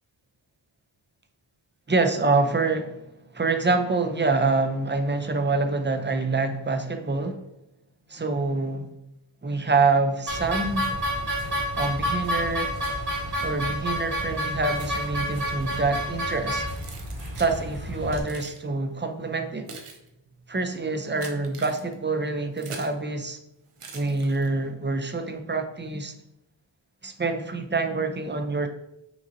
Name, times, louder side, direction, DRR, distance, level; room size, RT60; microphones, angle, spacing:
voice 1, 1.9-3.0 3.3-7.4 8.1-8.9 9.4-10.9 11.8-12.7 13.4-16.6 17.4-19.7 20.5-23.4 23.9-26.1 27.0-28.7, right 3 dB, 25° right, 6 dB, 0.4 m, -26 dB
sound 1, 10.3-18.2, equal, 50° right, 1.6 m, -29 dB
Keys jangling, 16.7-17.6 18.1-18.6 19.3-23.0 23.8-24.7, right 4 dB, 90° right, 0.7 m, -43 dB
5.9 x 2.7 x 2.6 m, 0.85 s
wide cardioid pair, 50°, 49 cm